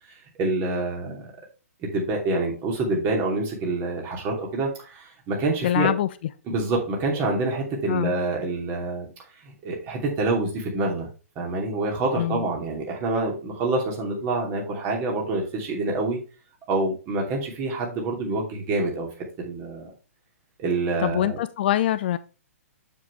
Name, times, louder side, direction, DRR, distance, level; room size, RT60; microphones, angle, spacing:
voice 1, 0.4-1.3 1.8-5.9 6.5-9.1 9.4-11.1 11.4-16.2 16.7-19.1 19.4-19.9 20.6-21.4, right 2 dB, 25° right, 2.8 m, -26 dB
voice 2, 5.6-6.1 7.9-8.1 12.2-12.4 21.0-22.2, left 12 dB, 45° left, 0.5 m, -24 dB
7.5 x 7.2 x 3.2 m
figure-of-eight pair, 120°, 8 cm